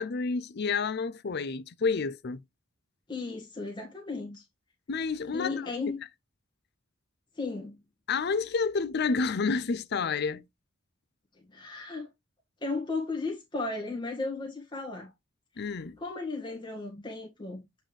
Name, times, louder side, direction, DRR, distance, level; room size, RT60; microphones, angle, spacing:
voice 1, 0.0-2.4 4.9-5.6 8.1-10.4 15.6-16.0, left 4 dB, 55° left, 0.5 m, -29 dB
voice 2, 3.1-4.4 5.3-6.0 7.4-7.8 11.5-12.1 12.6-15.1 15.7-17.6, left 3 dB, 25° left, 1.7 m, -35 dB
8.0 x 4.2 x 3.3 m
head